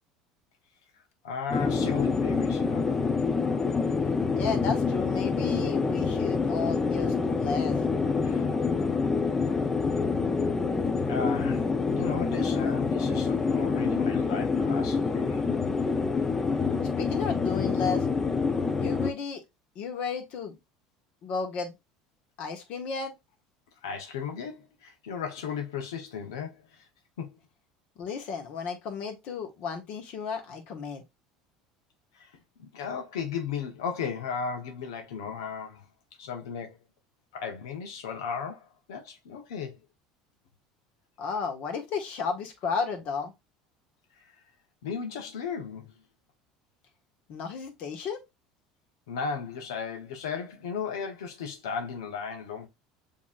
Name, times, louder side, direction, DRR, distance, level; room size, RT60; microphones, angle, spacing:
voice 1, 1.2-2.9 8.2-8.5 10.5-10.7 11.1-15.5 23.8-26.8 27.2-27.4 32.1-32.3 32.6-35.8 36.2-36.8 37.3-39.8 44.2-44.4 44.8-45.9 49.1-52.7, left 6 dB, 90° left, 0.9 m, -35 dB
sound 1, 1.5-19.1, left 4 dB, 20° left, 0.6 m, -27 dB
voice 2, 4.4-7.8 17.0-18.1 18.8-19.4 19.7-20.6 21.2-21.7 22.4-23.1 28.0-31.0 41.2-43.3 47.3-48.2, left 5 dB, 60° left, 1.5 m, -33 dB
7.0 x 2.9 x 2.5 m
supercardioid pair, 105°, 2 cm